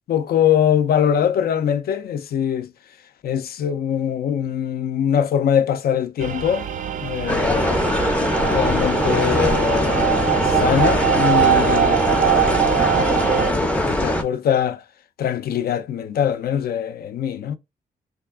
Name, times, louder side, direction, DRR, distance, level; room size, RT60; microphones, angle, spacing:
voice 1, 0.1-2.7 3.2-6.7 7.0-7.9 8.4-14.8 15.2-17.6, left 9 dB, 65° left, 0.4 m, -23 dB
sound 1, 6.2-13.5, right 11 dB, 50° right, 0.4 m, -22 dB
sound 2, 7.3-14.2, left 1 dB, 5° left, 0.5 m, -21 dB
3.3 x 2.4 x 3.4 m
cardioid pair, 125°, 17 cm